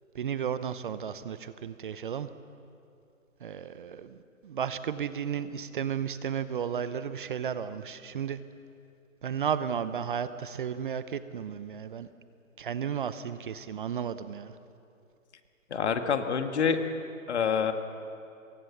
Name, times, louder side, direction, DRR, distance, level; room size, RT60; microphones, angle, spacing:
voice 1, 0.1-2.3 3.4-8.4 9.2-12.1 12.6-14.6, right 8 dB, 35° right, 13 dB, 0.8 m, -33 dB
voice 2, 15.7-16.8 17.3-17.7, left 7 dB, 50° left, 7 dB, 2.0 m, -26 dB
24.5 x 23.0 x 7.2 m, 2.6 s
hypercardioid pair, 150°, 42 cm